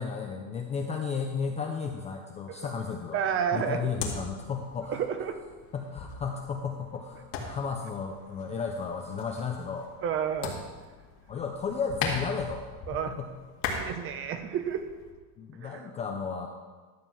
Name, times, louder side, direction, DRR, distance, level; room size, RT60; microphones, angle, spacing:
voice 1, 0.0-3.2 3.5-5.0 5.7-9.9 11.3-12.6 12.9-13.3 15.4-16.5, left 5 dB, 20° left, 2 dB, 0.4 m, -33 dB
voice 2, 3.1-3.9 4.9-5.4 10.0-10.6 12.9-13.2 13.7-14.8 15.6-15.9, right 8 dB, 30° right, 8 dB, 0.7 m, -31 dB
sound 1, 3.3-15.1, left 4 dB, 65° left, 2.2 m, -40 dB
12.5 x 4.4 x 7.5 m, 1.4 s
cardioid pair, 160°, 41 cm